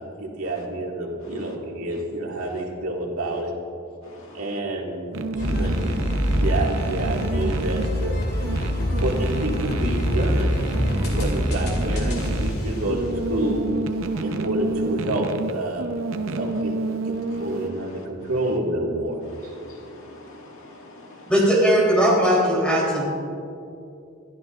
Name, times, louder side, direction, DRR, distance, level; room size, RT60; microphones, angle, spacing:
voice 1, 0.0-3.5 4.3-5.9 6.4-8.2 9.0-10.6 11.0-13.7 14.2-19.2 19.4-19.5, right 1 dB, 90° right, -1 dB, 2.1 m, -28 dB
voice 2, 4.0-4.6 6.2-6.4 8.4-9.0 10.9-11.2 14.1-14.5 17.2-18.1 19.3-21.3, left 2 dB, 70° left, 0 dB, 2.0 m, -46 dB
sound 1, 5.1-17.7, right 3 dB, 65° right, 0.7 m, -30 dB
sound 2, 5.4-13.8, equal, 50° left, 2.5 m, -25 dB
voice 3, 21.2-23.1, equal, 5° left, -5 dB, 3.5 m, -19 dB
22.0 x 13.0 x 2.5 m, 2.6 s
head